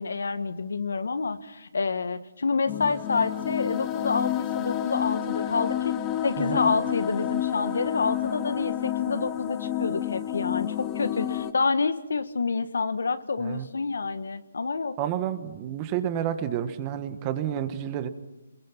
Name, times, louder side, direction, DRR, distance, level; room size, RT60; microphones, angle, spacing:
voice 1, 0.0-5.9 6.2-14.9, left 4 dB, 75° left, 10 dB, 1.7 m, -28 dB
sound 1, 2.7-11.5, left 12 dB, 15° left, 1.0 m, -30 dB
voice 2, 6.4-6.7 13.4-13.7 15.0-18.1, right 10 dB, 20° right, 10 dB, 1.4 m, -30 dB
28.0 x 22.0 x 6.0 m, 1.0 s
hypercardioid pair, 165°, 0 cm